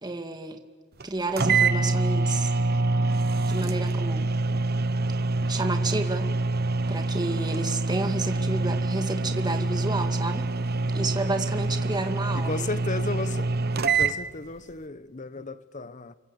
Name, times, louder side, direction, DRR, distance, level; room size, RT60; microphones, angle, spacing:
voice 1, 0.0-0.6 1.0-2.5 3.5-4.3 5.5-6.3 6.9-10.5 10.9-12.7, right 2 dB, 20° right, 2.2 m, -31 dB
sound 1, 1.0-1.1 1.4-14.2, right 3 dB, 50° right, 1.1 m, -26 dB
voice 2, 12.3-13.5 13.8-16.2, left 3 dB, 40° left, 1.0 m, -34 dB
29.5 x 24.5 x 8.1 m
head